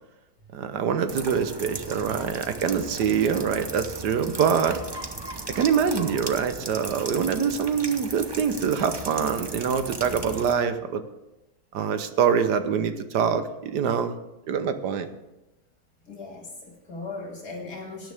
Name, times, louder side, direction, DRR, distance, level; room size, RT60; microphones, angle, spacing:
voice 1, 0.5-4.8 5.5-11.0 11.7-14.1 14.5-15.1, right 7 dB, 75° right, 10 dB, 1.5 m, -25 dB
sound 1, 1.1-10.5, right 3 dB, 25° right, 0.5 m, -37 dB
voice 2, 16.0-18.1, left 3 dB, 65° left, 1 dB, 2.7 m, -38 dB
19.0 x 10.0 x 3.5 m, 1.0 s
omnidirectional pair, 1.8 m